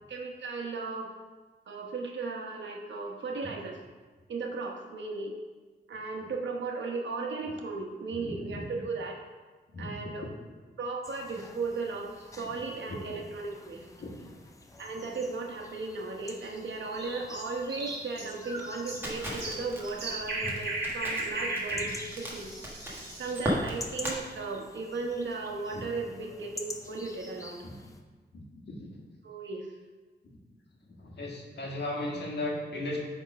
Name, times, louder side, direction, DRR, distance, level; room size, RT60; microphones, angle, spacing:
voice 1, 0.1-1.1 1.7-3.8 4.3-5.4 5.9-9.2 9.8-10.3 10.8-13.9 14.8-22.6 23.2-27.6 29.2-29.7, right 3 dB, 85° right, 1 dB, 1.1 m, -36 dB
voice 2, 8.2-8.7 9.7-9.9 14.0-14.1 20.4-20.5 21.7-21.8 25.7-25.8 27.6-27.7 28.3-28.9 30.2-30.4 31.0-33.0, left 2 dB, 65° left, -2 dB, 1.5 m, -36 dB
sound 1, 11.0-28.0, left 2 dB, 15° left, 0.5 m, -48 dB
sound 2, 16.9-23.5, right 2 dB, 60° right, 1.6 m, -36 dB
Crackle, 19.0-24.2, equal, 10° right, 1.4 m, -36 dB
8.8 x 3.6 x 5.1 m, 1.3 s
wide cardioid pair, 180°, 19 cm